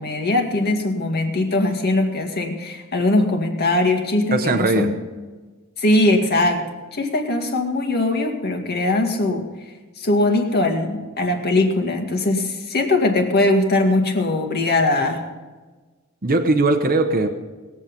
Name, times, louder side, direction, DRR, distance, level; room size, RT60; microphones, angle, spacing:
voice 1, 0.0-4.9 5.8-6.6 6.9-9.5 10.0-15.2, left 2 dB, 45° left, 3 dB, 2.1 m, -20 dB
voice 2, 4.3-4.9 16.2-17.3, right 2 dB, 40° right, 4 dB, 1.0 m, -19 dB
20.0 x 8.3 x 5.3 m, 1.3 s
head